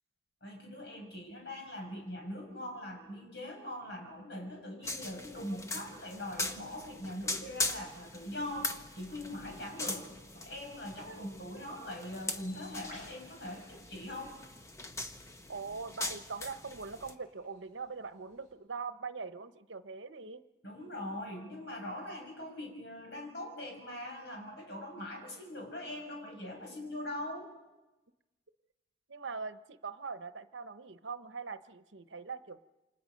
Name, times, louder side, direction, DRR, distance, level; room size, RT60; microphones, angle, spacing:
voice 1, 0.4-10.1 10.3-14.3 20.6-27.5, left 1 dB, 65° left, 1 dB, 6.8 m, -42 dB
sound 1, 4.8-17.1, left 2 dB, 15° left, 1.0 m, -41 dB
Bird, 12.1-18.5, left 2 dB, 45° left, 6.3 m, -60 dB
voice 2, 15.5-20.4 29.1-32.6, right 4 dB, 80° right, 11 dB, 0.9 m, -42 dB
28.5 x 26.5 x 5.3 m, 1.1 s
head